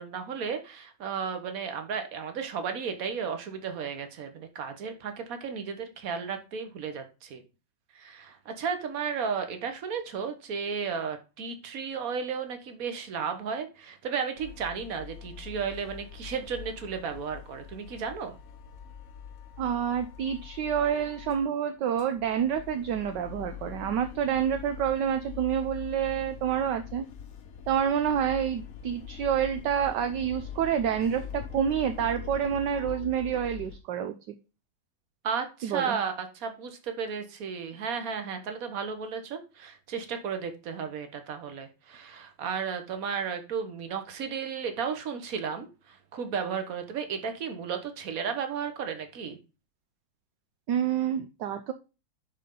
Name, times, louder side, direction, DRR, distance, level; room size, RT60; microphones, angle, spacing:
voice 1, 0.0-7.4 7.9-18.4 35.2-49.4, right 6 dB, 50° right, 7 dB, 1.5 m, -34 dB
sound 1, 14.4-21.5 21.8-33.8, left 8 dB, 55° left, 1.3 m, -43 dB
voice 2, 19.6-27.1 27.7-34.1 35.6-36.0 50.7-51.7, right 8 dB, 70° right, 8 dB, 1.3 m, -28 dB
10.5 x 4.2 x 3.8 m, 0.31 s
omnidirectional pair, 2.1 m